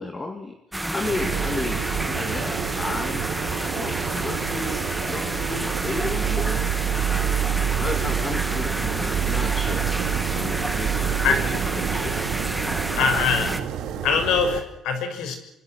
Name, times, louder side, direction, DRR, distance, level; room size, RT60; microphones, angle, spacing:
voice 1, 0.0-3.3 3.7-6.7 7.8-12.1, left 2 dB, 20° left, 5 dB, 2.2 m, -33 dB
sound 1, 0.7-13.6, right 1 dB, 5° right, 1.6 m, -30 dB
sound 2, 1.0-14.6, right 9 dB, 75° right, 3.0 m, -28 dB
voice 2, 13.0-13.6 14.0-15.4, left 5 dB, 80° left, 7 dB, 6.8 m, -23 dB
26.5 x 26.0 x 6.2 m, 0.87 s
cardioid pair, 155°, 0 cm